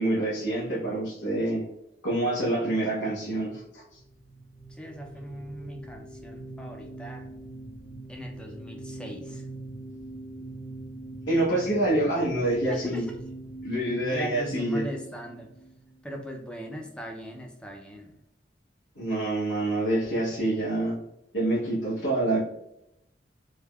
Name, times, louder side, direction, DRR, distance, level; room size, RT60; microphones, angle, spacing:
voice 1, 0.0-1.6 2.0-3.8 11.3-13.0 13.6-14.8 19.0-21.0 21.3-22.4, right 1 dB, 90° left, -7 dB, 0.8 m, -26 dB
sound 1, 3.9-16.4, right 2 dB, 40° left, 1.2 m, -43 dB
voice 2, 4.7-7.3 8.1-9.5 12.7-13.2 14.1-15.5 16.0-18.1, right 1 dB, 5° left, 2 dB, 0.4 m, -39 dB
3.3 x 2.1 x 2.2 m, 0.82 s
head